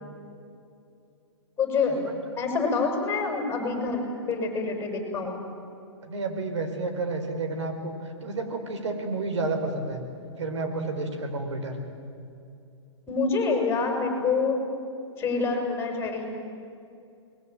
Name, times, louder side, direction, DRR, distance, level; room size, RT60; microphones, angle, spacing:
voice 1, 1.6-2.1 2.4-5.4 13.1-14.6 15.2-16.2, left 4 dB, 15° left, 3 dB, 7.1 m, -26 dB
voice 2, 6.0-7.9 8.2-10.0 10.4-11.8, right 3 dB, 75° right, 6 dB, 4.8 m, -30 dB
29.0 x 21.0 x 9.1 m, 2.6 s
hypercardioid pair, 125°, 15 cm